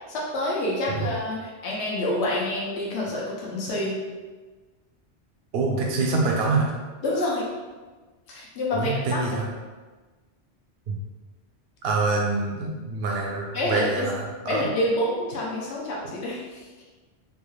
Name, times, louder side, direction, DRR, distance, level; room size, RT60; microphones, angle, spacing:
voice 1, 0.1-4.0 7.0-7.4 8.3-9.2 13.5-14.1 14.5-16.6, left 1 dB, 80° left, -4 dB, 1.0 m, -27 dB
voice 2, 5.5-6.7 8.7-9.5 10.9-11.0 11.8-14.7, right 3 dB, 70° right, -1 dB, 0.8 m, -25 dB
3.6 x 2.3 x 3.1 m, 1.3 s
omnidirectional pair, 1.1 m